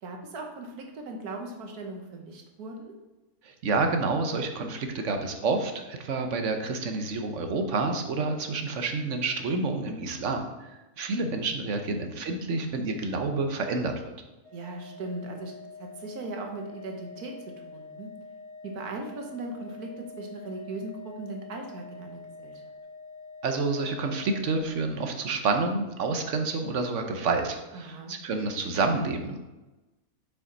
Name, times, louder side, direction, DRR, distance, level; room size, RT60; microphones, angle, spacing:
voice 1, 0.0-3.0 11.5-11.6 14.5-15.5 15.8-17.3 17.7-18.1 18.6-22.6 27.7-28.2, right 2 dB, 75° right, 3 dB, 1.7 m, -38 dB
voice 2, 3.4-10.4 11.0-13.9 23.4-29.4, right 3 dB, 55° right, 5 dB, 1.1 m, -28 dB
Organ, 14.4-25.1, left 3 dB, 90° left, 3.0 m, -46 dB
7.0 x 6.2 x 4.0 m, 1.1 s
omnidirectional pair, 1.6 m